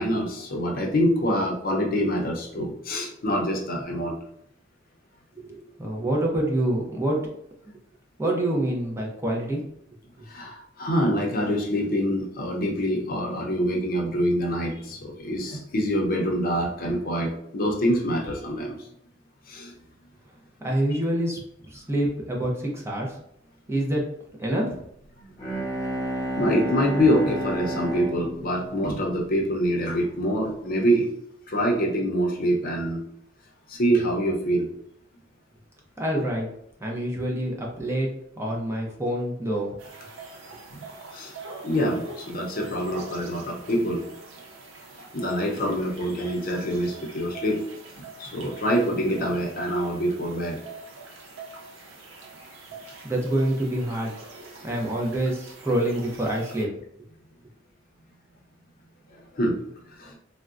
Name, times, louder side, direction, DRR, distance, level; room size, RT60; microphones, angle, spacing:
voice 1, 0.0-4.2 10.3-18.7 19.5-19.7 26.4-31.1 31.5-33.0 33.7-34.7 40.7-40.8 41.1-41.3 41.6-44.0 45.1-47.6 48.2-50.6 59.1-59.6 60.0-60.2, equal, 50° left, 0 dB, 0.6 m, -25 dB
voice 2, 5.4-7.2 8.2-9.6 20.6-23.1 23.7-24.1 24.4-24.7 36.0-36.5 36.8-38.1 38.4-39.7 53.0-54.1 54.6-56.7, right 1 dB, 15° right, -2 dB, 0.5 m, -26 dB
Bowed string instrument, 25.2-29.9, right 1 dB, 15° left, 0.8 m, -31 dB
sound 1, 39.8-56.7, right 3 dB, 90° right, 0.7 m, -44 dB
3.6 x 2.1 x 2.4 m, 0.73 s
head